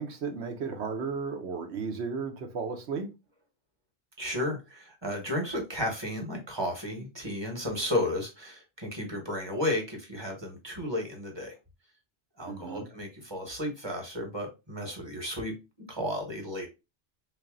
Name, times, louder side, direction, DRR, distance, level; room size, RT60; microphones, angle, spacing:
voice 1, 0.0-3.1 12.5-12.9, right 5 dB, 80° right, 1.1 m, -34 dB
voice 2, 4.2-11.5 12.4-16.7, left 1 dB, 25° right, 1.2 m, -33 dB
3.4 x 2.6 x 3.6 m
omnidirectional pair, 1.1 m